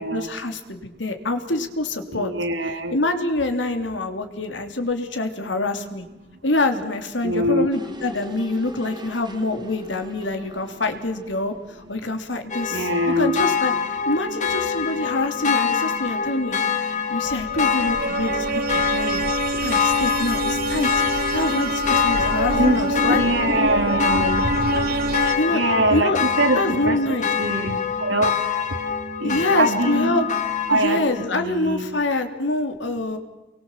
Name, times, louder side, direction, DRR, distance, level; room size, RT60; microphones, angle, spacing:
voice 1, 0.0-2.3 2.9-6.0 6.4-13.7 14.0-18.5 18.7-19.2 19.6-23.2 25.4-25.6 25.9-26.2 26.5-27.3 29.2-30.3 30.7-33.2, left 2 dB, 75° left, 6 dB, 3.1 m, -25 dB
voice 2, 2.1-3.0 7.2-7.7 12.7-13.4 22.6-22.8 23.1-25.2 25.5-28.4 29.2-30.1 30.7-31.0 31.3-32.0, right 1 dB, 90° right, 6 dB, 3.0 m, -23 dB
sound 1, 7.7-12.7 13.0-13.1, left 1 dB, 25° right, 3.0 m, -42 dB
sound 2, 12.5-31.3, left 6 dB, 45° left, 2.2 m, -25 dB
sound 3, 17.2-25.3, right 2 dB, 55° right, 2.3 m, -26 dB
29.5 x 23.0 x 7.4 m, 1.1 s
head